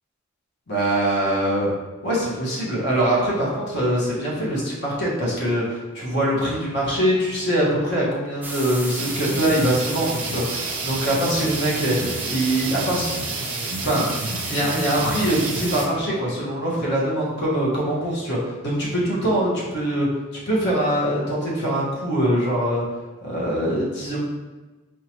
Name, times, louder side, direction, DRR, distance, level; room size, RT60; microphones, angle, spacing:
voice 1, 0.7-1.7 2.0-13.1 13.8-14.1 14.5-20.1 20.5-22.8 23.2-24.2, right 1 dB, 50° left, -5 dB, 1.0 m, -23 dB
sound 1, 8.4-15.9, right 2 dB, 10° right, 0.3 m, -32 dB
sound 2, 9.0-15.8, right 3 dB, 65° right, 0.5 m, -31 dB
4.6 x 2.8 x 2.9 m, 1.2 s
head